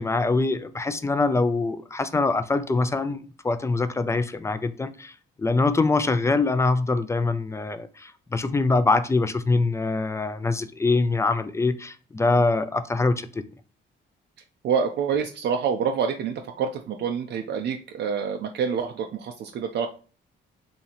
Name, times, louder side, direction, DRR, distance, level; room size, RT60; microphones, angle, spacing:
voice 1, 0.0-5.1 5.4-13.4, left 3 dB, 15° left, 0.3 m, -24 dB
voice 2, 14.6-19.9, right 6 dB, 60° right, 0.4 m, -27 dB
2.9 x 2.7 x 4.1 m
cardioid pair, 90°, 20 cm